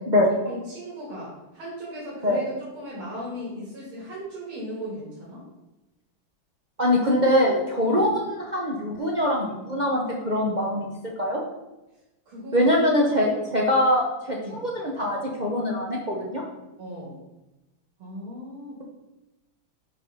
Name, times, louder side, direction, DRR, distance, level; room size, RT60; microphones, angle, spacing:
voice 1, 0.4-5.4 7.9-8.0 12.3-12.8 13.4-13.5 14.4-14.6 16.8-17.2 18.0-18.8, equal, 80° right, -6 dB, 2.7 m, -37 dB
voice 2, 6.8-10.9 11.2-11.4 12.5-16.4, left 1 dB, 55° right, -3 dB, 0.4 m, -23 dB
5.6 x 5.1 x 5.5 m, 1.0 s
omnidirectional pair, 2.3 m